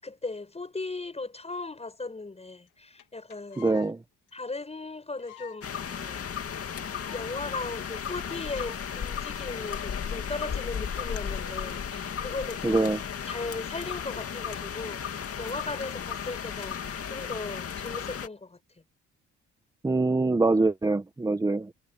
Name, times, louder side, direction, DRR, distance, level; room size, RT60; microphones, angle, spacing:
voice 1, 0.0-3.7 4.3-6.3 7.1-18.6, left 3 dB, 20° left, 6.8 m, -37 dB
sound 1, 2.7-2.8 3.0-3.1 3.3-4.0 4.3-4.4 4.6-4.7 5.2-5.6 6.0-6.1 6.3-6.4 6.6-7.3 7.6-7.7 7.9-8.2 8.5-8.8 9.4-9.7, left 9 dB, 85° left, 2.3 m, -48 dB
voice 2, 3.6-4.0 12.6-13.0 19.8-21.7, right 3 dB, 10° right, 1.0 m, -24 dB
sound 2, 5.6-18.3, left 7 dB, 50° left, 2.5 m, -35 dB
cardioid pair, 90°, 30 cm